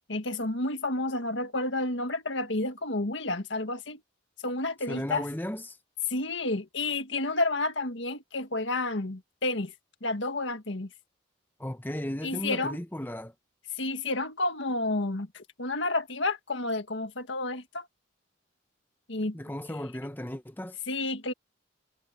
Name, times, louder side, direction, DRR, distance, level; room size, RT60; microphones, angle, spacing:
voice 1, 0.1-4.0 4.4-5.2 6.1-9.7 10.0-10.9 12.2-12.8 13.8-17.9 19.1-19.4 19.7-19.8 20.9-21.3, left 2 dB, 65° left, 1.8 m, -30 dB
voice 2, 4.9-5.8 11.6-13.3 19.3-20.8, left 1 dB, 10° left, 1.1 m, -35 dB
head